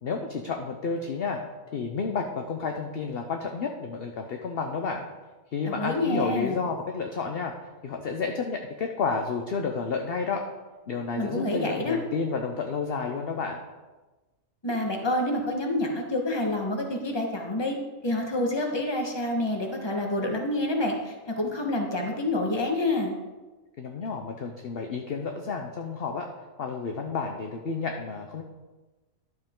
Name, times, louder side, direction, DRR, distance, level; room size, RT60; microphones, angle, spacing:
voice 1, 0.0-1.4 1.7-5.1 5.5-7.5 7.8-10.4 10.9-13.6 23.8-26.3 26.6-28.4, left 5 dB, 50° left, 3 dB, 0.8 m, -31 dB
voice 2, 5.6-6.6 11.2-12.0 14.6-17.8 18.0-23.2, left 1 dB, 20° left, 1 dB, 1.4 m, -28 dB
11.5 x 7.8 x 3.7 m, 1.2 s
omnidirectional pair, 1.5 m